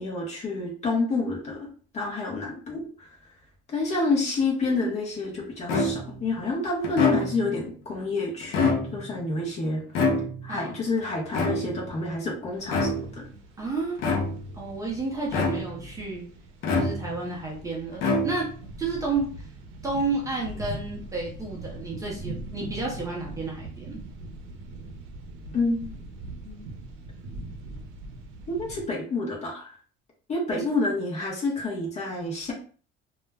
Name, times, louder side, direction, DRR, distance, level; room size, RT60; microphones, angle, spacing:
voice 1, 0.0-1.7 1.9-3.1 3.7-9.8 10.4-13.2 25.5-25.9 26.4-26.7 28.5-29.8 30.3-32.5, left 3 dB, 30° left, -1 dB, 0.7 m, -28 dB
sound 1, 5.7-6.2 6.8-7.6 8.4-9.2 9.9-10.6 11.3-12.0 12.7-13.2 14.0-14.6 15.3-15.9 16.6-17.3 18.0-18.7, left 3 dB, 70° left, 0.6 m, -26 dB
voice 2, 10.5-10.9 13.6-14.0 14.5-16.2 16.7-18.5 18.8-19.3 19.8-24.0 30.5-30.6, right 3 dB, 15° right, -4 dB, 0.5 m, -31 dB
sound 2, 12.6-28.9, right 2 dB, 70° right, 0.6 m, -42 dB
2.3 x 2.0 x 3.3 m, 0.42 s
cardioid pair, 170°, 21 cm